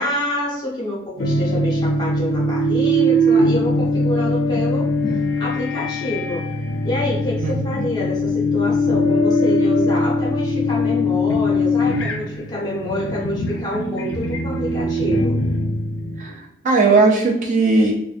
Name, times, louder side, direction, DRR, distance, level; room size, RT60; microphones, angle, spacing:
voice 1, 0.0-4.9 5.4-6.4 6.8-15.4, left 1 dB, 20° left, -4 dB, 0.6 m, -27 dB
sound 1, 1.2-16.3, left 1 dB, 70° left, 0.4 m, -21 dB
voice 2, 7.4-7.8 16.2-17.9, right 3 dB, 40° right, 0 dB, 0.3 m, -18 dB
2.5 x 2.1 x 2.4 m, 0.75 s
head